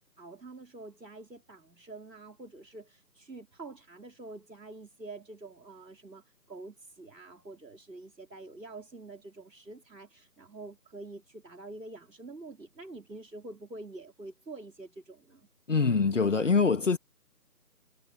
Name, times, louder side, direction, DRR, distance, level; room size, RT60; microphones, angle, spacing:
voice 1, 0.0-15.5, right 2 dB, 80° right, 3.5 m, -47 dB
voice 2, 15.7-17.0, left 4 dB, 45° left, 1.7 m, -24 dB
figure-of-eight pair, 160°, 50 cm